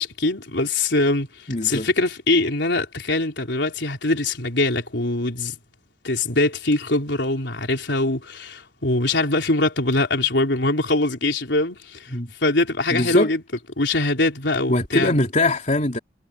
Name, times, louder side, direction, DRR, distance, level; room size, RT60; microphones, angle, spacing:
voice 1, 0.0-5.6 6.0-12.1 12.4-13.4 13.8-15.1, left 2 dB, 70° left, 4.1 m, -22 dB
voice 2, 1.5-1.9 12.1-12.3 12.9-13.3 14.7-16.0, left 2 dB, 40° left, 3.1 m, -22 dB
head